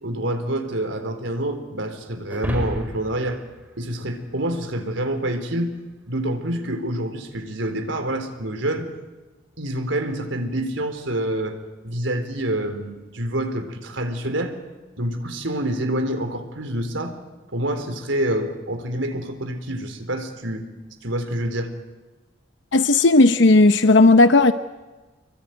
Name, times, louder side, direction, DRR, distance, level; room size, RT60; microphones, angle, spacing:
voice 1, 0.0-3.4 3.8-5.7 6.1-8.9 9.6-11.6 11.8-14.6 15.0-17.1 17.5-20.6 21.0-21.7, right 1 dB, 80° right, 3.9 m, -27 dB
sound 1, 2.3-4.8, equal, 10° right, 5.3 m, -32 dB
voice 2, 22.7-24.5, left 2 dB, 70° left, 0.9 m, -14 dB
27.0 x 23.0 x 9.3 m
head